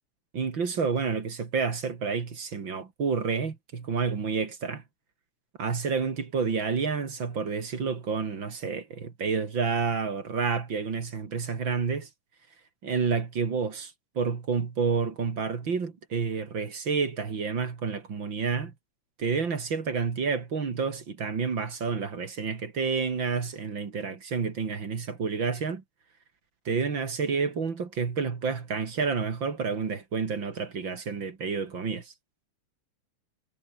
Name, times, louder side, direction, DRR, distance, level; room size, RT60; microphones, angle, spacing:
voice 1, 0.3-4.8 5.6-12.1 12.8-18.7 19.2-25.8 26.6-32.1, right 5 dB, 40° right, 2.9 m, -29 dB
omnidirectional pair, 3.5 m